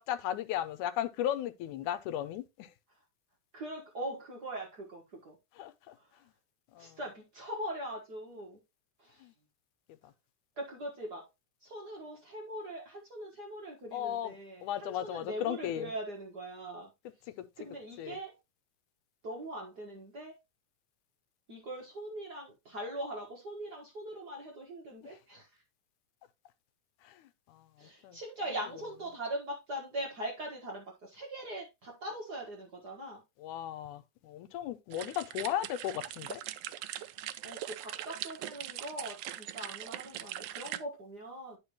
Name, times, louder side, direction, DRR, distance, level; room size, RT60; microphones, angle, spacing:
voice 1, 0.1-2.7 5.6-6.0 6.7-7.0 9.2-9.3 10.0-10.1 13.9-14.3 14.6-15.9 17.4-17.5 18.0-18.2 27.0-28.2 33.4-36.4, left 11 dB, 85° left, 2.1 m, -36 dB
voice 2, 3.5-5.3 6.0-6.1 6.8-8.6 9.0-9.2 10.6-11.3 11.6-16.9 17.6-18.4 19.2-20.4 21.5-25.6 27.8-33.2 37.4-41.6, right 1 dB, 45° right, 1.4 m, -41 dB
sound 1, 34.9-40.8, right 13 dB, 85° right, 1.5 m, -41 dB
9.8 x 4.9 x 3.0 m
omnidirectional pair, 3.5 m